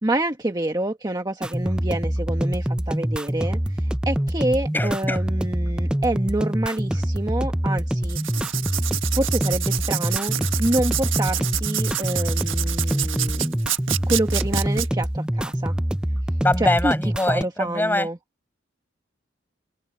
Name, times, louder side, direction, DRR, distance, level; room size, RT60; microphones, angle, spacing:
voice 1, 0.0-8.2 9.1-13.6 14.1-15.7 16.6-16.9 17.3-18.2, right 1 dB, 20° right, 1.5 m, -27 dB
sound 1, 1.4-17.4, equal, 5° right, 0.4 m, -25 dB
voice 2, 4.7-5.2 16.4-18.1, left 1 dB, 10° left, 5.6 m, -23 dB
Writing, 8.1-14.9, right 12 dB, 90° right, 1.4 m, -28 dB
open air
head